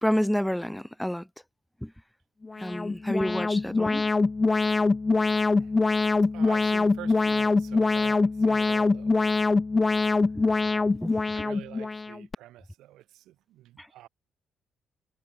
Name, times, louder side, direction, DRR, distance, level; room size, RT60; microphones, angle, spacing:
voice 1, 0.0-1.3 1.8-1.9 2.6-4.1 10.2-10.5 11.0-11.2 13.8-13.9, equal, 5° left, 1.5 m, -29 dB
Alarm, 2.4-12.3, left 3 dB, 25° left, 0.4 m, -24 dB
voice 2, 2.5-2.8 3.8-4.1 5.5-5.7 6.3-9.2 10.6-14.1, right 15 dB, 85° right, 3.1 m, -47 dB
cardioid pair, 90°, 0 cm